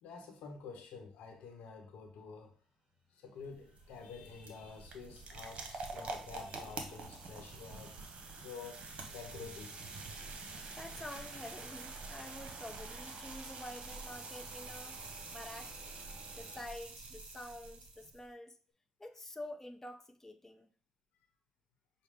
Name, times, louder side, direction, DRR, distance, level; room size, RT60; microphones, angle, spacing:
voice 1, 0.0-2.5 3.1-7.9 8.4-9.8, left 5 dB, 85° left, 3 dB, 0.9 m, -49 dB
sound 1, 2.6-16.7, right 1 dB, 35° right, 1.6 m, -60 dB
sound 2, 3.4-18.2, right 3 dB, 55° right, 1.0 m, -47 dB
voice 2, 10.7-15.0 15.3-15.7 16.4-18.6 19.0-20.7, left 1 dB, 15° left, 5 dB, 0.7 m, -48 dB
6.3 x 2.2 x 3.6 m, 0.40 s
supercardioid pair, 65°, 2 cm